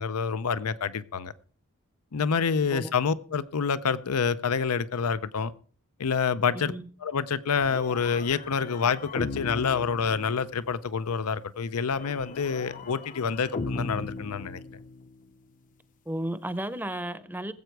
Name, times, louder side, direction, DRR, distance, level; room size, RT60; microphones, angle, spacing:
voice 1, 0.0-1.3 2.1-5.5 6.0-6.7 7.0-14.6, left 6 dB, 90° left, 0.6 m, -27 dB
voice 2, 6.5-6.9 16.1-17.5, right 1 dB, 10° right, 0.7 m, -33 dB
sound 1, 7.6-10.8 11.9-15.2, left 3 dB, 35° left, 0.6 m, -38 dB
20.0 x 7.9 x 4.7 m
head